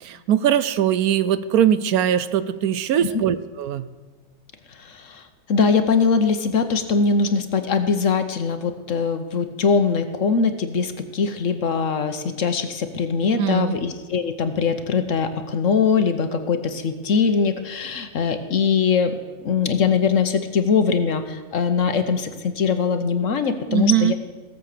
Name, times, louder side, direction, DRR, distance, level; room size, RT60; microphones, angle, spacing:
voice 1, 0.0-3.9 13.4-13.8 23.7-24.1, right 10 dB, 70° right, 14 dB, 1.1 m, -21 dB
voice 2, 4.8-19.2 19.4-24.1, left 5 dB, 55° left, 9 dB, 1.2 m, -22 dB
17.0 x 7.5 x 6.6 m, 1.3 s
omnidirectional pair, 1.7 m